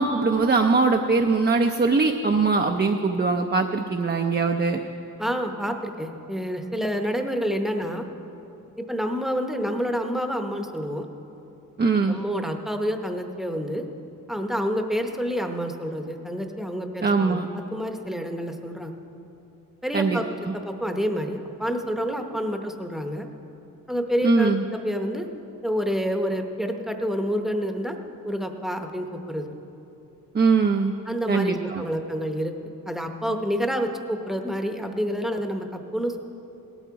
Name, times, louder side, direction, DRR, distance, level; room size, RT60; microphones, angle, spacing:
voice 1, 0.0-4.8 11.8-12.2 17.0-17.5 19.9-20.2 24.2-24.6 30.3-30.9 31.3-31.8, right 4 dB, 30° right, 4 dB, 0.5 m, -21 dB
voice 2, 5.2-8.0 8.8-11.1 12.1-13.8 14.3-18.9 19.8-20.2 20.5-23.3 23.9-24.5 24.8-25.3 25.6-27.9 28.2-29.5 31.1-32.5 32.9-36.2, equal, ahead, 4 dB, 0.8 m, -28 dB
18.0 x 12.0 x 4.7 m, 2.9 s
wide cardioid pair, 165°, 34 cm